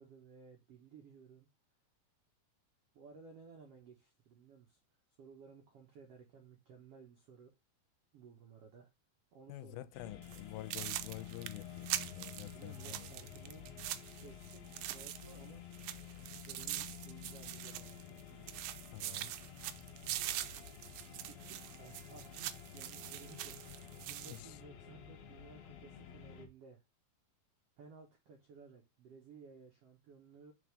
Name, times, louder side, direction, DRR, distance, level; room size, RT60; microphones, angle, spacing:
voice 1, 0.0-1.5 2.9-4.8 5.2-7.5 8.1-8.9 9.3-9.9 12.4-13.7 14.2-15.6 16.4-18.6 21.2-23.8 24.1-26.8 27.8-30.5, right 5 dB, 65° right, 1.6 m, -57 dB
voice 2, 9.5-13.1 18.9-19.3 24.3-24.6, left 15 dB, 90° left, 2.4 m, -48 dB
sound 1, 9.9-26.5, left 9 dB, 70° left, 1.6 m, -51 dB
sound 2, 10.2-10.4 10.7-15.5 15.7-18.2 18.5-24.4, right 14 dB, 85° right, 2.4 m, -43 dB
5.1 x 4.7 x 5.0 m
omnidirectional pair, 4.2 m